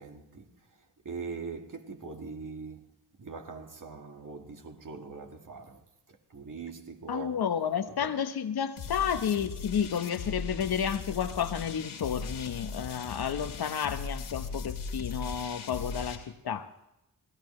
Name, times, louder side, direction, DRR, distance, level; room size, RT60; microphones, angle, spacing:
voice 1, 0.0-7.5 7.9-8.2 12.9-13.0, right 4 dB, 45° right, 2.1 m, -43 dB
voice 2, 7.1-16.7, left 8 dB, 60° left, 1.2 m, -31 dB
sound 1, 8.8-16.2, left 4 dB, 75° left, 2.4 m, -38 dB
24.5 x 16.0 x 3.3 m
supercardioid pair, 45°, 43 cm